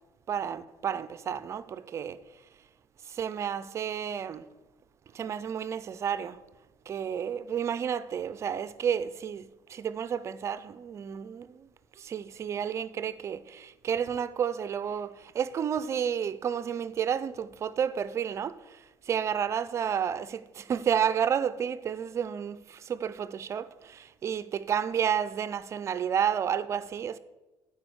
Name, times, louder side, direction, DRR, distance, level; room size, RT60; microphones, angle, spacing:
voice 1, 0.3-2.2 3.1-4.4 5.1-6.4 6.9-11.7 12.0-27.2, right 8 dB, 35° right, 0.5 m, -31 dB
9.7 x 5.1 x 7.9 m
cardioid pair, 150°, 8 cm